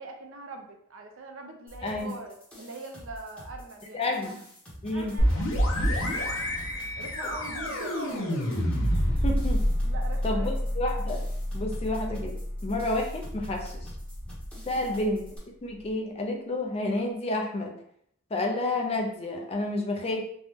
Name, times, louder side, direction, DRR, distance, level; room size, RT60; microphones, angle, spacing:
voice 1, 0.0-4.4 4.9-6.3 7.0-8.2 9.8-10.7 14.9-15.0, right 2 dB, 70° right, 4 dB, 0.5 m, -42 dB
sound 1, 1.7-15.4, equal, 5° left, 0.8 m, -47 dB
voice 2, 1.8-2.1 3.9-4.3 4.8-5.1 9.2-9.6 10.2-11.3 11.5-12.3 12.6-13.9 14.7-15.3 15.6-17.7 18.3-20.2, left 2 dB, 30° left, 2 dB, 0.4 m, -30 dB
sound 2, 5.2-14.7, equal, 85° left, 0.8 m, -28 dB
3.4 x 2.1 x 2.8 m, 0.67 s
head